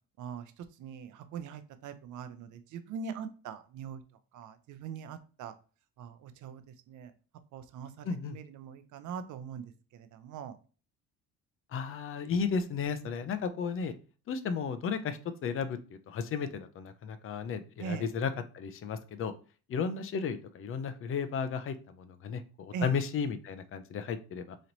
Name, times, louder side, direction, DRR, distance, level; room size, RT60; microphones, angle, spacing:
voice 1, 0.2-4.0 4.3-5.5 6.0-7.1 7.5-10.6 17.8-18.1 22.7-22.9, right 6 dB, 60° right, 11 dB, 0.6 m, -41 dB
voice 2, 8.0-8.4 11.7-14.0 14.3-15.8 16.1-19.3 19.7-24.6, left 6 dB, 40° left, 10 dB, 0.5 m, -34 dB
3.1 x 2.9 x 3.9 m, 0.37 s
cardioid pair, 125°, 34 cm